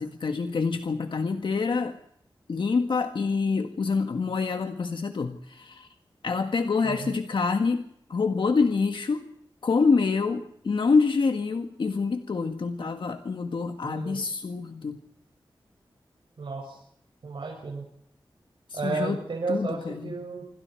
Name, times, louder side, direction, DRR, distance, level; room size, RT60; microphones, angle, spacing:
voice 1, 0.0-2.0 2.5-5.9 6.2-9.3 9.6-15.0 18.7-19.2 19.5-20.1, left 4 dB, 70° left, 6 dB, 1.6 m, -26 dB
voice 2, 6.8-7.1 13.8-14.2 16.4-16.8 17.2-17.8 18.7-20.5, right 4 dB, 75° right, -3 dB, 6.4 m, -33 dB
27.5 x 25.0 x 4.6 m, 0.70 s
wide cardioid pair, 105°, 9 cm